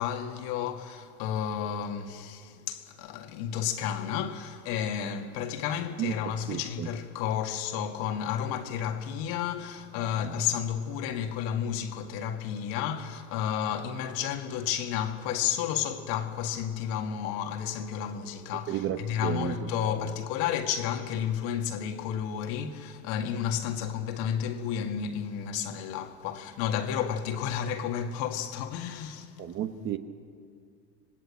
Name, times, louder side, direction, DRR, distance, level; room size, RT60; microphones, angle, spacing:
voice 1, 0.0-29.3, left 9 dB, 45° left, 2.0 m, -32 dB
voice 2, 6.0-6.9 10.2-10.4 18.7-20.1 29.4-30.0, right 10 dB, 25° right, 1.0 m, -33 dB
26.5 x 19.5 x 8.5 m
supercardioid pair, 135°, 48 cm